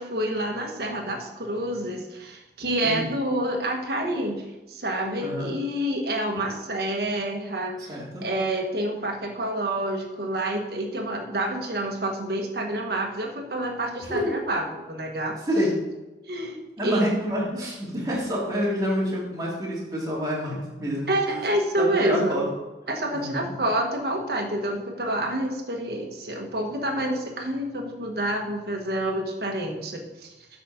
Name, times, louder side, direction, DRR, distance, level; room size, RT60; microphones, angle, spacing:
voice 1, 0.0-4.4 4.7-15.3 16.3-17.1 21.1-22.4 22.9-30.3, right 1 dB, 65° right, 2 dB, 1.5 m, -28 dB
voice 2, 5.2-5.5 7.9-8.2 14.0-14.4 15.5-15.7 16.8-21.4 21.8-22.5 23.1-23.5, equal, 20° right, -5 dB, 2.7 m, -27 dB
8.3 x 5.1 x 6.0 m, 1.1 s
head